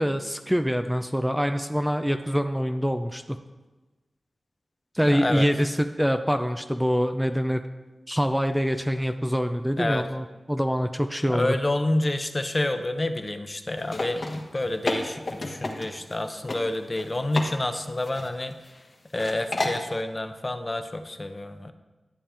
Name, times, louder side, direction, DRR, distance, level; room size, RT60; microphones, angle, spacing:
voice 1, 0.0-3.4 4.9-7.6 8.1-11.5, equal, 5° right, 7 dB, 0.5 m, -25 dB
voice 2, 5.0-5.5 9.8-10.1 11.3-18.6 19.1-21.7, left 1 dB, 35° left, 8 dB, 0.7 m, -28 dB
sound 1, 13.8-16.2 16.5-16.6 16.9-17.5 17.7-18.8 19.1-19.8, left 2 dB, 55° left, 1.2 m, -31 dB
11.5 x 7.1 x 3.5 m, 1.2 s
cardioid pair, 40°, 0 cm